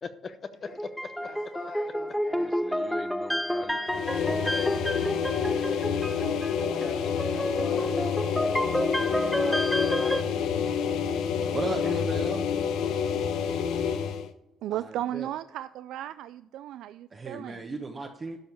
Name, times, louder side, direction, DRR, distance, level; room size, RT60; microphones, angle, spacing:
voice 1, 0.0-1.1 2.3-3.8 4.2-5.3, left 4 dB, 40° left, 10 dB, 0.9 m, -42 dB
sound 1, 0.7-10.2, equal, ahead, 0.8 m, -30 dB
voice 2, 1.2-2.5 5.6-8.0 8.9-11.3, left 4 dB, 65° left, -2 dB, 2.5 m, -46 dB
sound 2, 3.9-14.3, left 7 dB, 80° left, 1.0 m, -28 dB
voice 3, 4.7-5.1 14.6-17.6, right 12 dB, 80° right, 13 dB, 0.3 m, -35 dB
voice 4, 11.5-12.5 14.7-15.3 17.1-18.4, right 3 dB, 30° right, 1 dB, 1.2 m, -35 dB
12.0 x 5.5 x 6.9 m, 0.81 s
cardioid pair, 95°, 0 cm